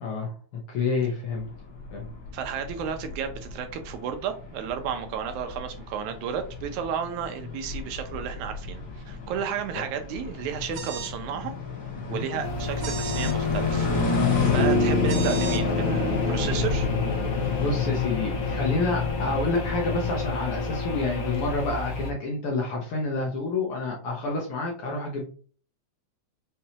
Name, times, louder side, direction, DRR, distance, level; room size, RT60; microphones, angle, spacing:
voice 1, 0.0-1.5 1.9-2.1 11.9-12.3 17.5-25.2, left 3 dB, 65° left, 0 dB, 1.6 m, -29 dB
sound 1, 1.3-20.3, left 4 dB, 35° left, 1.5 m, -29 dB
voice 2, 2.3-11.5 12.1-16.9, right 8 dB, 80° right, 6 dB, 2.1 m, -33 dB
sound 2, 10.7-11.2 12.8-13.4 15.1-15.6, right 8 dB, 65° right, 1.4 m, -36 dB
sound 3, 12.4-22.1, left 3 dB, 90° left, 1.0 m, -31 dB
5.7 x 3.1 x 2.8 m, 0.42 s
omnidirectional pair, 3.4 m